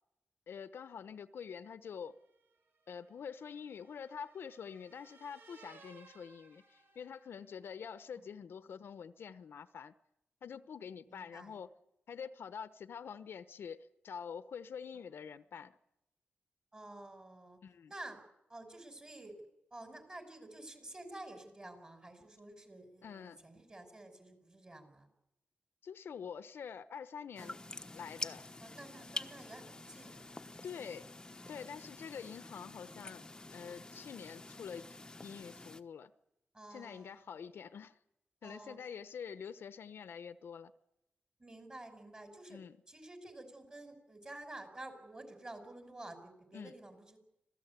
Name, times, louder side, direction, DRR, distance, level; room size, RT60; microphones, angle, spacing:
voice 1, 0.5-2.2 2.9-9.9 10.4-11.7 12.1-15.8 17.6-17.9 23.0-23.4 25.8-27.6 27.9-28.4 30.6-31.1 31.5-34.9 35.2-36.1 36.7-38.0 38.4-40.7 42.5-42.8 46.5-46.8, left 7 dB, 80° left, 1.0 m, -46 dB
sound 1, 2.1-7.6, right 4 dB, 75° right, 3.2 m, -62 dB
voice 2, 11.1-11.6 16.7-17.6 17.9-18.2 18.5-19.3 19.7-25.1 27.4-27.8 28.6-30.9 31.4-31.7 33.4-33.8 36.5-37.2 38.4-38.8 41.4-42.6 42.9-47.2, right 1 dB, 25° right, 5.4 m, -51 dB
sound 2, 27.4-35.8, left 2 dB, 20° left, 1.1 m, -47 dB
26.0 x 17.0 x 8.3 m
wide cardioid pair, 120°, 4 cm